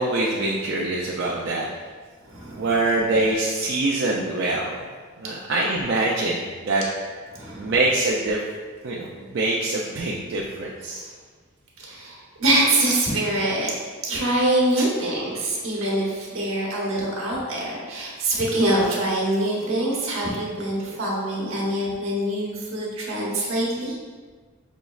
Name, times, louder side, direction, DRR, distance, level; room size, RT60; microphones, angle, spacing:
voice 1, 0.0-1.7 2.6-4.7 5.2-6.8 7.6-8.4 8.8-11.0 14.7-14.9, right 2 dB, 55° right, -3 dB, 0.4 m, -24 dB
voice 2, 2.2-2.7 7.3-7.7 10.9-11.1 11.8-13.7 14.0-23.9, right 1 dB, 75° right, -4 dB, 1.0 m, -24 dB
5.3 x 3.0 x 2.3 m, 1.5 s
head